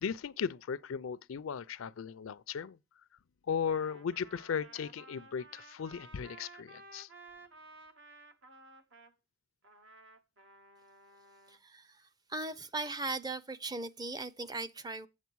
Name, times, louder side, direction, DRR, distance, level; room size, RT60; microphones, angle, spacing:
voice 1, 0.0-2.8 3.5-7.1, left 6 dB, 85° left, 0.4 m, -36 dB
Trumpet, 3.6-9.1 9.6-11.6, right 2 dB, 70° right, 1.2 m, -55 dB
voice 2, 11.5-15.1, right 2 dB, 20° right, 0.5 m, -39 dB
8.2 x 7.6 x 4.6 m
head